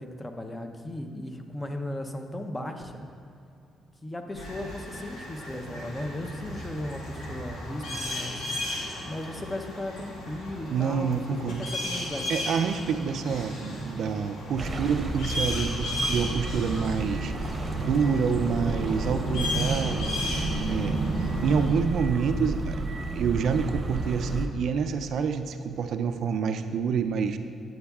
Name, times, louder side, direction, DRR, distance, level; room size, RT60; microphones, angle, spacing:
voice 1, 0.0-3.0 4.0-11.2 11.5-12.3, left 1 dB, 15° left, 5 dB, 0.6 m, -36 dB
sound 1, 4.3-21.7, equal, 90° left, 1.3 m, -34 dB
voice 2, 10.7-11.6 12.3-20.1 20.7-21.0 21.4-27.4, right 6 dB, 70° right, 8 dB, 0.3 m, -27 dB
sound 2, 14.6-24.5, right 2 dB, 25° right, 0.8 m, -32 dB
9.5 x 7.8 x 2.3 m, 2.6 s
cardioid pair, 90°, 0 cm